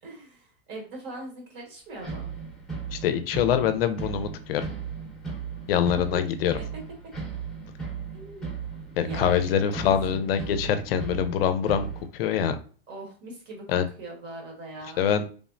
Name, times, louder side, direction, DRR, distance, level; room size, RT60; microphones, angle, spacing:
voice 1, 0.0-2.3 5.9-6.2 6.6-6.7 8.1-8.5 8.9-10.3 12.9-15.1, right 2 dB, 35° right, 0 dB, 1.2 m, -41 dB
sound 1, 2.0-12.1, right 6 dB, ahead, 0.9 m, -36 dB
voice 2, 2.9-4.7 5.7-6.5 9.0-12.6 13.7-13.9 15.0-15.2, left 9 dB, 75° left, 10 dB, 0.5 m, -24 dB
3.4 x 2.0 x 2.5 m, 0.40 s
hypercardioid pair, 135°, 30 cm